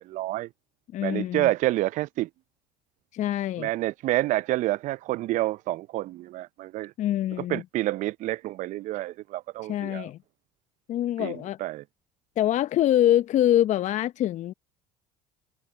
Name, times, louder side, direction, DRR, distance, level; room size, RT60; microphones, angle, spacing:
voice 1, 0.0-0.5 1.0-2.3 3.6-6.9 7.4-10.1 11.2-11.8, right 16 dB, 50° right, 0.6 m, -28 dB
voice 2, 0.9-1.5 3.1-3.7 7.0-7.6 9.7-10.2 10.9-11.6 12.4-14.5, left 12 dB, 50° left, 0.9 m, -24 dB
hypercardioid pair, 60°, 16 cm